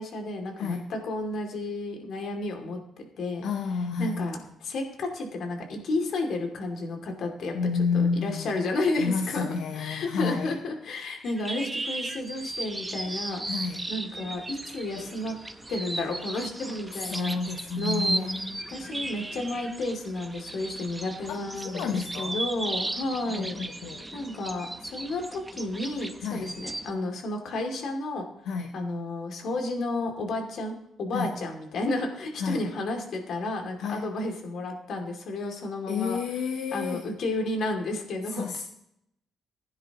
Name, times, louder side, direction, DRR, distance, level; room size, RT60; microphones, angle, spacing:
voice 1, 0.0-3.5 4.0-7.5 7.9-9.5 9.7-13.4 13.9-15.4 15.7-17.4 17.8-18.3 18.7-23.6 24.1-28.3 28.7-36.2 36.7-38.5, left 2 dB, 65° left, 3 dB, 2.6 m, -32 dB
voice 2, 3.4-4.3 7.5-8.7 9.0-10.6 13.5-13.9 16.9-18.7 21.3-21.4 21.6-22.4 23.3-24.1 26.2-26.5 28.5-28.7 31.1-31.3 32.4-32.6 33.8-34.1 35.9-37.1 38.3-38.6, left 5 dB, 85° left, 4 dB, 0.9 m, -30 dB
sound 1, 11.2-26.9, right 2 dB, 15° right, 0.8 m, -36 dB
16.0 x 10.0 x 3.0 m, 0.77 s
cardioid pair, 90°, 0 cm